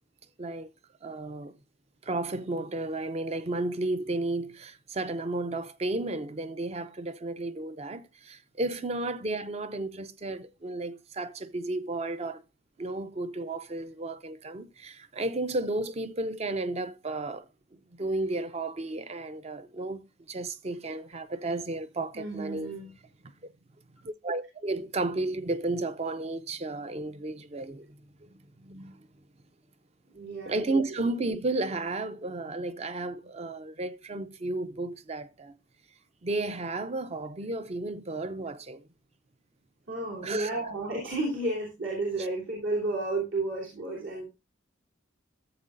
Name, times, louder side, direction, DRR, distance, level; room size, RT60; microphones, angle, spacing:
voice 1, 0.4-0.7 1.0-1.6 2.0-12.4 12.8-20.0 20.3-22.7 24.0-28.0 28.3-29.1 30.5-35.6 36.2-38.8 40.2-40.5, right 2 dB, 30° right, 0.5 m, -33 dB
voice 2, 22.1-22.9 30.1-30.6 39.9-44.2, right 2 dB, 70° right, 3.1 m, -32 dB
13.5 x 7.5 x 2.5 m
head